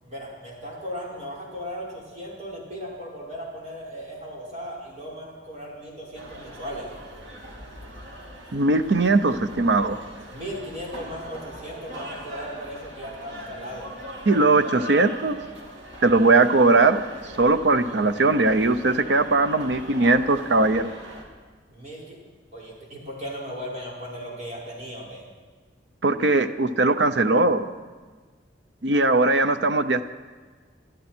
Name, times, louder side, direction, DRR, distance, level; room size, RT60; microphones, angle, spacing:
voice 1, 0.0-6.9 10.3-13.9 21.7-22.2 22.5-25.2, equal, 40° right, -5 dB, 5.4 m, -37 dB
sound 1, 6.1-21.2, equal, 85° right, 3.0 m, -41 dB
voice 2, 8.5-10.0 14.3-15.4 16.0-17.0 17.4-20.8 26.0-27.6 28.8-30.0, right 3 dB, 70° right, 10 dB, 0.8 m, -20 dB
23.5 x 13.0 x 4.5 m, 1.4 s
head